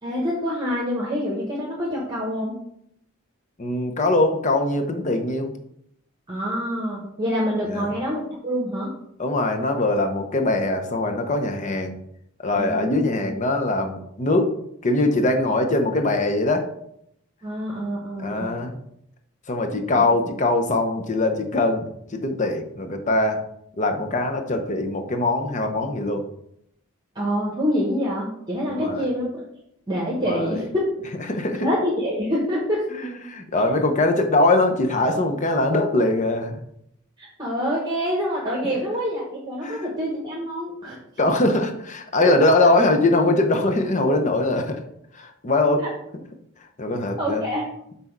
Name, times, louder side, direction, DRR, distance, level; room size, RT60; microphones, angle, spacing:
voice 1, 0.0-2.5 6.3-8.9 12.5-13.3 17.4-18.5 20.0-20.1 27.1-29.4 29.9-31.1 31.6-32.9 37.2-41.0 42.4-42.5 45.8-45.9 47.2-47.7, equal, 20° right, -4 dB, 1.1 m, -26 dB
voice 2, 3.6-5.5 7.7-7.9 9.2-12.0 12.4-14.5 14.8-16.7 18.2-18.8 19.5-23.4 23.8-26.2 28.7-29.0 30.2-30.6 31.3-31.7 32.9-36.6 39.6-39.9 41.2-44.8 45.1-45.9 46.8-47.5, left 2 dB, 35° left, 5 dB, 0.7 m, -22 dB
6.1 x 4.1 x 4.5 m, 0.74 s
head